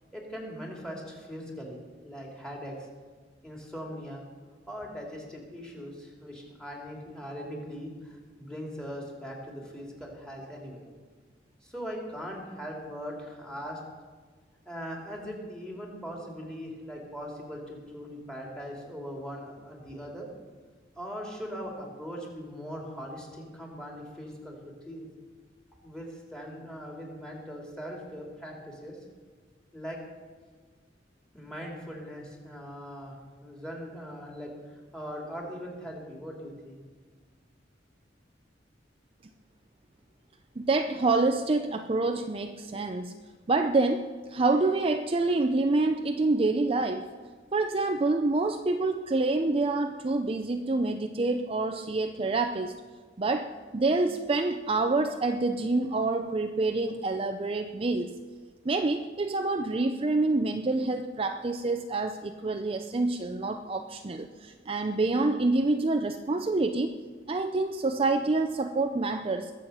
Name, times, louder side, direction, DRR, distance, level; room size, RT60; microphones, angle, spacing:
voice 1, 0.1-2.7 3.4-4.2 4.7-10.8 11.6-13.8 14.7-20.3 21.0-24.6 24.9-25.1 25.8-29.0 29.7-30.0 31.3-34.5 34.9-36.8, equal, 5° left, -1 dB, 2.8 m, -40 dB
voice 2, 40.6-43.1 43.5-47.1 47.5-52.7 53.2-58.1 58.6-67.0 67.3-69.5, right 3 dB, 30° right, 6 dB, 0.5 m, -27 dB
21.0 x 7.6 x 5.6 m, 1.5 s
head